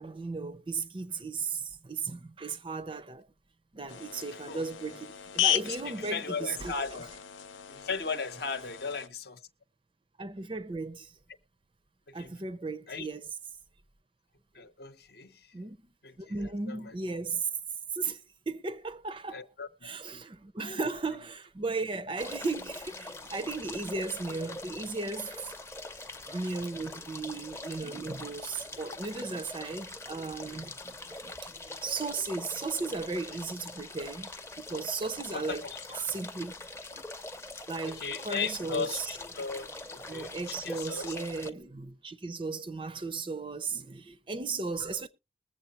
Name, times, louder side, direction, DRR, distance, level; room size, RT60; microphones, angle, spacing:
voice 1, 0.0-3.3 3.7-7.0 10.2-11.1 12.1-13.3 15.5-15.8 16.2-17.5 17.9-19.4 19.8-25.6 26.3-30.9 31.2-31.5 31.8-34.3 34.6-35.6 35.9-36.5 37.7-39.2 40.1-45.1, right 4 dB, 25° right, 0.5 m, -36 dB
sound 1, 3.9-9.1, left 11 dB, 90° left, 0.6 m, -35 dB
voice 2, 5.7-7.1 7.7-9.4 12.2-12.3 12.9-13.1 14.5-15.4 16.0-16.3 16.7-16.9 19.3-20.2 20.6-20.8 35.3-36.0 36.9-37.0 37.9-41.2, left 5 dB, 55° left, 0.8 m, -37 dB
sound 2, 22.2-41.5, left 2 dB, 15° left, 0.6 m, -43 dB
21.0 x 7.4 x 2.9 m
head